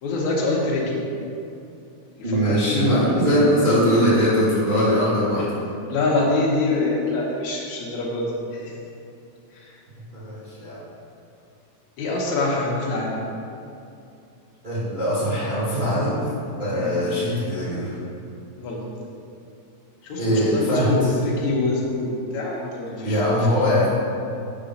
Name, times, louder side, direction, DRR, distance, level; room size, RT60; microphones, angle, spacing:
voice 1, 0.0-1.0 2.2-3.4 5.9-8.7 9.6-9.7 12.0-13.2 16.7-17.0 18.6-18.8 20.0-23.3, left 2 dB, 80° left, -3 dB, 2.4 m, -25 dB
voice 2, 2.2-5.4 10.1-10.8 14.6-16.3 16.6-18.0 20.2-21.1 23.0-23.9, equal, 35° right, -11 dB, 0.7 m, -21 dB
8.0 x 3.9 x 5.3 m, 2.6 s
omnidirectional pair, 3.3 m